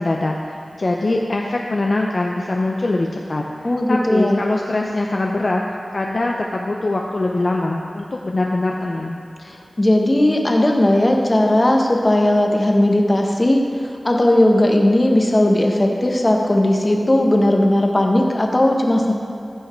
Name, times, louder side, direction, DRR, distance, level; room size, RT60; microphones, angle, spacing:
voice 1, 0.0-3.4 3.9-5.6 5.9-9.2, left 2 dB, 55° left, 0 dB, 0.6 m, -22 dB
voice 2, 3.6-4.4 9.4-13.6 14.0-19.1, left 1 dB, 35° left, 1 dB, 1.2 m, -17 dB
15.0 x 5.6 x 4.5 m, 2.6 s
wide cardioid pair, 70°, 0 cm